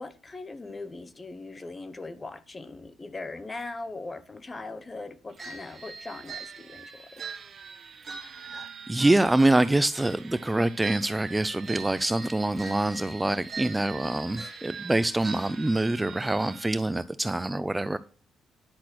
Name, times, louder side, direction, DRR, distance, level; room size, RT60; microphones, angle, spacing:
voice 1, 0.0-7.2, left 3 dB, 25° left, 1.0 m, -40 dB
sound 1, 5.4-16.8, right 5 dB, 50° right, 1.9 m, -42 dB
voice 2, 8.4-18.0, right 2 dB, 10° right, 0.5 m, -25 dB
10.5 x 6.1 x 6.1 m
cardioid pair, 90°, 0 cm